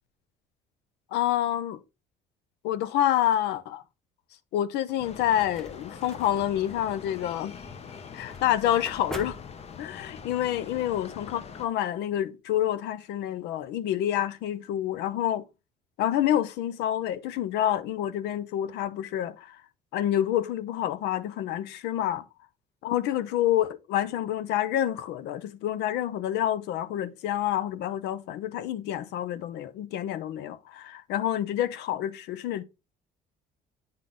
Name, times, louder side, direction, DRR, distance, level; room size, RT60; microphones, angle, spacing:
voice 1, 1.1-1.8 2.6-3.8 4.5-7.5 8.1-9.4 9.8-15.5 16.0-19.6 19.9-22.2 22.8-32.6, left 11 dB, 85° left, 0.6 m, -28 dB
sound 1, 4.9-10.2, equal, 5° left, 0.8 m, -45 dB
sound 2, 5.0-11.7, left 6 dB, 40° left, 0.7 m, -43 dB
8.8 x 3.8 x 3.7 m
cardioid pair, 110°, 17 cm